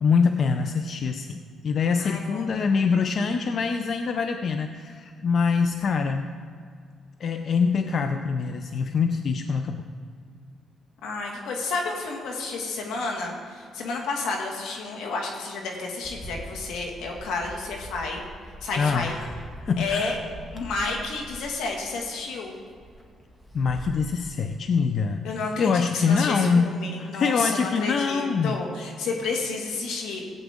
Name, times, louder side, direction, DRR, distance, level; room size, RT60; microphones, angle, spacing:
voice 1, 0.0-6.3 7.2-9.9 18.8-19.3 19.6-20.1 23.5-25.3 25.6-26.7 27.0-28.6, left 5 dB, 55° left, 7 dB, 0.5 m, -24 dB
voice 2, 2.0-2.5 11.0-18.2 18.6-19.2 19.8-20.2 20.5-22.5 25.2-30.2, left 3 dB, 85° left, 1 dB, 2.0 m, -31 dB
Bird, 16.0-24.0, right 1 dB, 10° left, 1.7 m, -43 dB
16.0 x 8.3 x 3.7 m, 2.1 s
cardioid pair, 90°, 0 cm